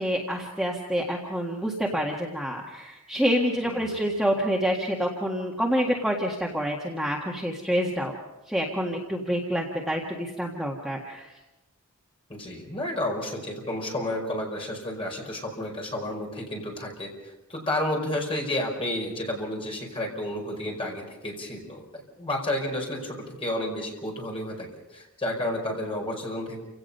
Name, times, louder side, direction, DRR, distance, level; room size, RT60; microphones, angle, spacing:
voice 1, 0.0-8.1 8.5-11.3, equal, ahead, -2 dB, 1.7 m, -27 dB
voice 2, 3.6-4.0 12.3-17.1 17.5-26.6, left 1 dB, 25° left, 0 dB, 5.0 m, -31 dB
29.0 x 17.5 x 5.5 m, 1.0 s
head